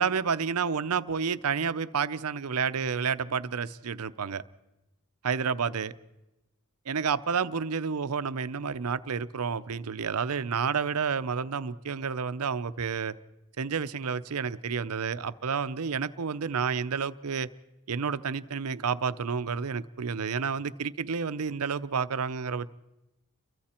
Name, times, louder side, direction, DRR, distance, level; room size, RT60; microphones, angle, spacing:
voice 1, 0.0-4.4 5.2-5.9 6.9-13.1 13.6-17.5 17.9-22.7, right 6 dB, 85° right, 14 dB, 0.7 m, -30 dB
30.0 x 23.0 x 4.4 m, 0.98 s
head